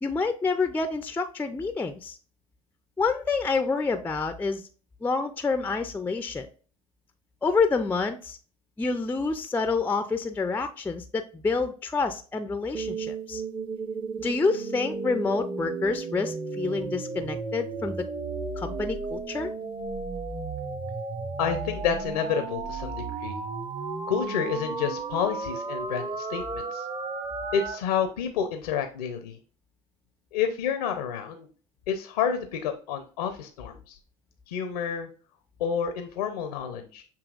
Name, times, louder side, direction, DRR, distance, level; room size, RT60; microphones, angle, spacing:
voice 1, 0.0-2.2 3.0-4.7 5.0-6.5 7.4-8.4 8.8-13.4 14.2-18.0 18.6-19.5, left 4 dB, 10° left, 8 dB, 0.4 m, -28 dB
sound 1, 12.7-27.8, right 4 dB, 25° right, 0.7 m, -34 dB
voice 2, 21.4-23.4 24.1-26.9 27.5-29.4 30.3-31.5 31.9-34.0 34.5-35.1 35.6-37.0, left 7 dB, 85° left, 7 dB, 0.6 m, -29 dB
7.0 x 2.8 x 2.4 m, 0.39 s
hypercardioid pair, 75°, 18 cm